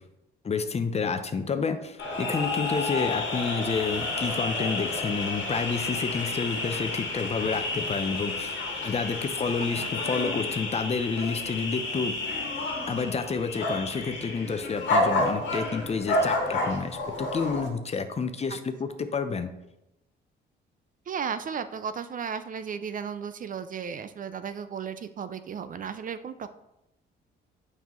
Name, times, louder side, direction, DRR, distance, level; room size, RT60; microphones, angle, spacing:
voice 1, 0.4-12.2 12.9-19.5, left 5 dB, 30° left, 8 dB, 0.6 m, -29 dB
sound 1, 2.0-17.7, left 2 dB, 70° left, 1.5 m, -30 dB
voice 2, 21.1-26.5, right 7 dB, 45° right, 11 dB, 0.4 m, -34 dB
7.2 x 5.4 x 3.1 m, 0.89 s
cardioid pair, 90°, 20 cm